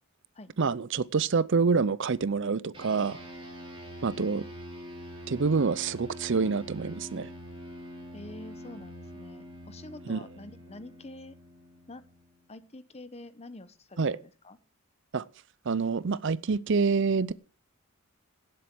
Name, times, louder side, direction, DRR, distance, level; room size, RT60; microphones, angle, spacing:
voice 1, 0.6-3.2 4.0-4.4 5.3-7.3 10.1-10.2 14.0-14.2 15.1-15.2 15.7-17.3, right 4 dB, 55° right, 0.5 m, -27 dB
sound 1, 2.7-12.5, equal, 25° right, 3.9 m, -45 dB
voice 2, 4.1-4.5 8.1-11.3 11.9-12.0 12.5-14.6, left 2 dB, 30° left, 1.0 m, -47 dB
17.5 x 7.8 x 6.1 m
head